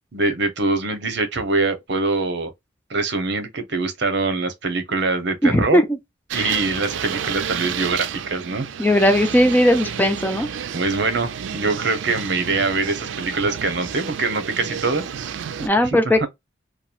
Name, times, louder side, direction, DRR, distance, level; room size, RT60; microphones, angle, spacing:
voice 1, 0.1-2.5 2.9-5.8 6.3-8.7 10.7-15.0 15.8-16.3, right 3 dB, 65° right, 0.8 m, -23 dB
voice 2, 5.4-5.8 6.3-6.5 8.8-10.5 15.6-16.3, left 1 dB, 10° left, 0.4 m, -18 dB
sound 1, 6.3-15.7, right 8 dB, 85° right, 0.4 m, -31 dB
3.0 x 2.3 x 2.4 m
head